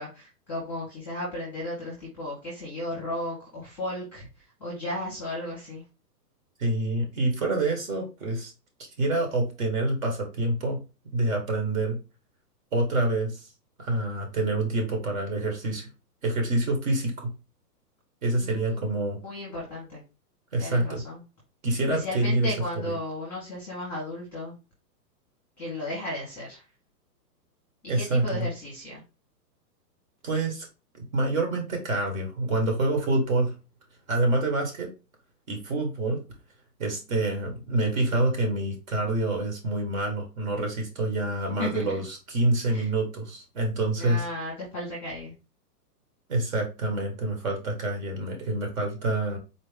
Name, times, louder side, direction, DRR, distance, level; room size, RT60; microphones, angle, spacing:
voice 1, 0.0-5.8 18.4-20.0 20.6-21.2 21.9-24.5 25.6-26.6 27.8-29.0 41.6-42.0 42.7-42.9 44.0-45.3, left 1 dB, 5° left, -6 dB, 1.1 m, -35 dB
voice 2, 6.6-8.5 9.0-10.8 11.1-12.0 12.7-13.5 13.8-15.9 16.2-17.3 18.2-19.2 20.5-21.0 21.6-22.5 27.9-28.5 30.2-30.7 31.1-33.5 34.1-34.9 35.5-36.2 36.8-44.2 46.3-49.4, right 2 dB, 55° right, 3 dB, 1.6 m, -27 dB
4.3 x 2.8 x 3.4 m, 0.30 s
hypercardioid pair, 175°, 49 cm